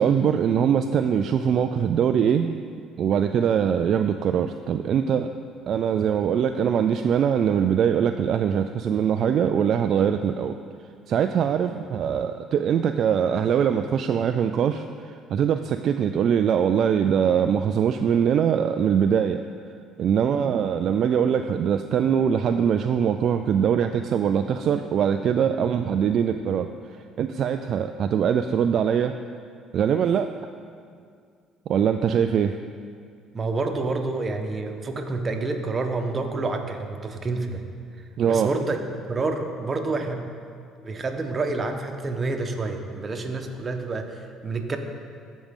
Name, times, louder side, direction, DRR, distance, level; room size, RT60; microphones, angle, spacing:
voice 1, 0.0-2.5 3.0-5.3 5.7-10.6 11.1-19.4 20.0-26.7 27.2-29.1 29.7-30.3 31.7-32.6 38.2-38.5, right 8 dB, 55° right, 7 dB, 0.3 m, -22 dB
voice 2, 33.3-37.6 38.2-38.8 39.1-40.2 40.8-44.8, right 3 dB, 35° right, 4 dB, 1.2 m, -28 dB
15.0 x 5.1 x 3.7 m, 2.2 s
supercardioid pair, 70°, 0 cm